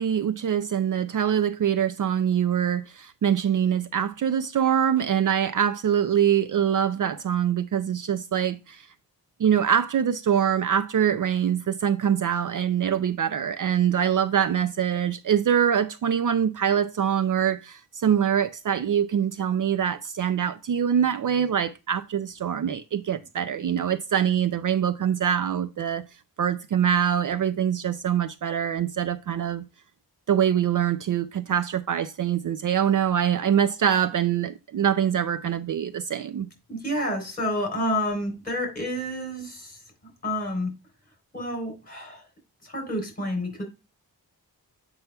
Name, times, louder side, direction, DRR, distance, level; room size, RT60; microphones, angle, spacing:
voice 1, 0.0-8.9 9.4-26.0 26.4-29.6 30.3-36.5, right 9 dB, 55° right, 0.5 m, -24 dB
voice 2, 36.7-39.8 40.2-40.7 41.3-42.2 42.6-43.6, left 1 dB, 25° left, 3.5 m, -29 dB
8.0 x 5.5 x 2.2 m
wide cardioid pair, 145°, 37 cm